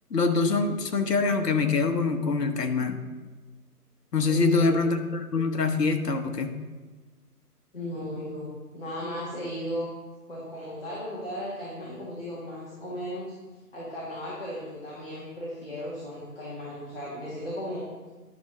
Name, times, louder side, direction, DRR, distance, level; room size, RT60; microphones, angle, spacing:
voice 1, 0.1-3.0 4.1-6.5, left 4 dB, 80° left, 5 dB, 1.1 m, -24 dB
voice 2, 4.3-4.9 7.7-9.9 10.3-13.3 13.7-17.8, equal, 35° left, -8 dB, 1.6 m, -36 dB
10.5 x 6.3 x 3.1 m, 1.3 s
figure-of-eight pair, 175°, 47 cm